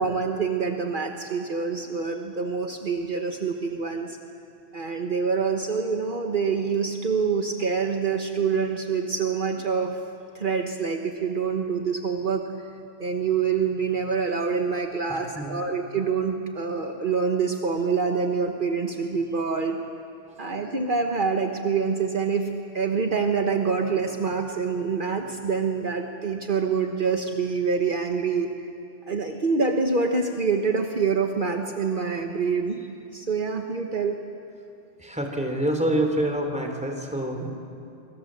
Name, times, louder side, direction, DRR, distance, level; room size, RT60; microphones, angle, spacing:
voice 1, 0.0-4.2 4.7-9.9 10.3-12.4 13.0-19.8 20.4-22.5 22.7-28.5 29.1-32.8 33.1-34.2, right 5 dB, 55° right, 3 dB, 1.4 m, -26 dB
voice 2, 15.1-15.6 20.3-20.4 35.0-37.5, right 1 dB, 5° right, 3 dB, 3.4 m, -27 dB
25.5 x 25.5 x 7.7 m, 2.7 s
omnidirectional pair, 1.0 m